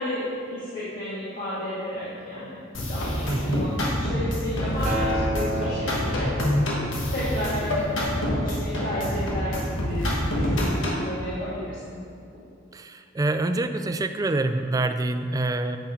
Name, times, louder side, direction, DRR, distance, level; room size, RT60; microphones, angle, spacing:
voice 1, 0.0-2.6 2.9-6.3 7.1-12.0, left 1 dB, 50° left, -11 dB, 1.8 m, -32 dB
sound 1, 2.7-11.1, equal, 90° left, 1.4 m, -26 dB
voice 2, 3.3-3.7 12.7-15.8, right 2 dB, 20° right, 8 dB, 0.3 m, -26 dB
Acoustic guitar, 4.8-9.1 10.0-10.1, equal, 40° right, 1.0 m, -33 dB
8.0 x 5.9 x 4.4 m, 2.4 s
head